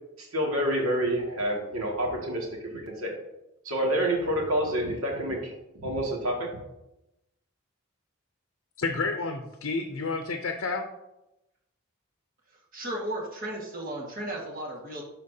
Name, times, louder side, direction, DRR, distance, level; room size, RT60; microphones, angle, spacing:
voice 1, 0.2-2.5 2.7-3.1 3.6-5.5 5.8-6.5, right 1 dB, 90° right, -1 dB, 2.0 m, -28 dB
voice 2, 8.8-10.9, left 3 dB, 70° left, 5 dB, 0.6 m, -30 dB
voice 3, 12.7-15.0, right 1 dB, 40° right, -2 dB, 1.7 m, -35 dB
11.5 x 4.4 x 2.7 m, 0.90 s
head